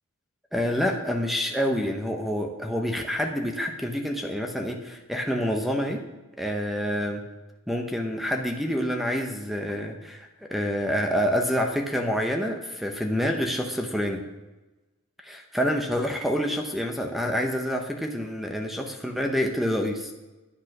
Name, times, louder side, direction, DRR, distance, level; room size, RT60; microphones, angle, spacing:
voice 1, 0.5-6.0 6.4-7.2 7.7-14.2 15.2-20.1, equal, ahead, 3 dB, 0.9 m, -27 dB
10.5 x 8.6 x 6.0 m, 1.1 s
head